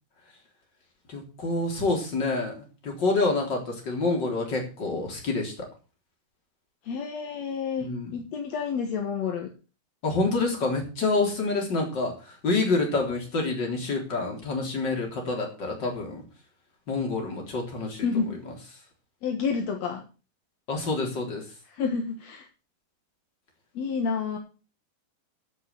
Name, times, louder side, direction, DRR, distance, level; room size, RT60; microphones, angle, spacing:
voice 1, 1.1-5.7 7.8-8.2 10.0-16.2 16.9-18.2 20.7-21.5, left 3 dB, 25° left, 1 dB, 3.9 m, -27 dB
voice 2, 6.8-9.5 18.0-18.4 19.2-20.0 21.7-22.5 23.7-24.4, left 5 dB, 60° left, 4 dB, 1.9 m, -29 dB
14.5 x 6.4 x 6.8 m, 0.35 s
omnidirectional pair, 4.6 m